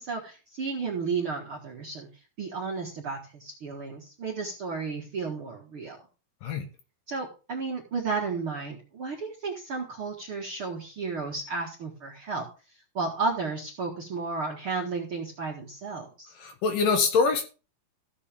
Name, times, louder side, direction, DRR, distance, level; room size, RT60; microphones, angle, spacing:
voice 1, 0.0-2.1 2.4-6.0 7.1-12.5 12.9-16.3, right 4 dB, 50° right, -2 dB, 1.7 m, -33 dB
voice 2, 16.4-17.4, left 5 dB, 65° left, 6 dB, 2.8 m, -24 dB
14.5 x 8.2 x 3.5 m, 0.33 s
omnidirectional pair, 4.7 m